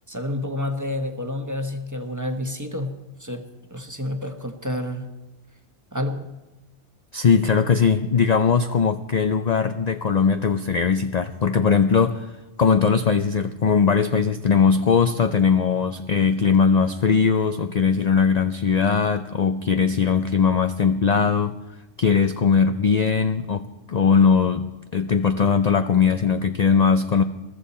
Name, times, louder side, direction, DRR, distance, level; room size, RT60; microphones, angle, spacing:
voice 1, 0.1-2.9 3.2-5.1 5.9-6.3, left 1 dB, 15° right, 5 dB, 1.1 m, -29 dB
voice 2, 7.1-12.3 12.6-21.5 22.0-27.2, left 6 dB, 50° left, 9 dB, 0.5 m, -20 dB
21.5 x 13.5 x 4.3 m, 1.1 s
omnidirectional pair, 1.2 m